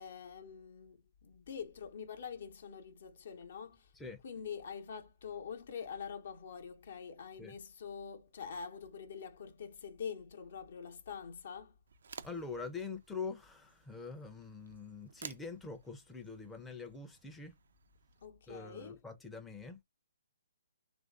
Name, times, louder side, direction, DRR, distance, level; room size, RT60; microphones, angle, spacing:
voice 1, 0.0-3.9 4.2-11.8 18.2-19.0, left 6 dB, 60° left, 0.8 m, -45 dB
sound 1, 11.9-18.3, right 6 dB, 65° right, 0.5 m, -55 dB
voice 2, 12.2-17.5 18.5-19.8, left 4 dB, 5° left, 0.6 m, -44 dB
3.1 x 2.5 x 3.5 m
figure-of-eight pair, 135°, 0 cm